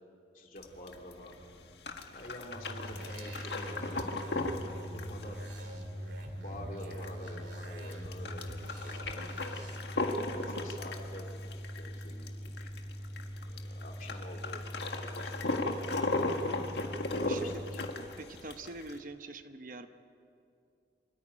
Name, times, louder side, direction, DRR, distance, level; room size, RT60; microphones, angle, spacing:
voice 1, 0.3-1.4 2.1-3.9 4.9-5.4 6.0-9.5 10.2-11.4 11.8-12.7 13.5-14.6 14.9-16.1 17.1-17.8, left 1 dB, 45° left, 1 dB, 3.3 m, -48 dB
sound 1, 0.6-19.0, left 2 dB, 65° left, 1.7 m, -37 dB
sound 2, 2.5-17.9, equal, ahead, 4.5 m, -43 dB
sound 3, 2.9-9.8, right 1 dB, 75° right, 2.5 m, -48 dB
voice 2, 17.3-17.6 18.2-19.9, right 2 dB, 45° right, 8 dB, 0.9 m, -44 dB
26.5 x 14.0 x 10.0 m, 2.5 s
head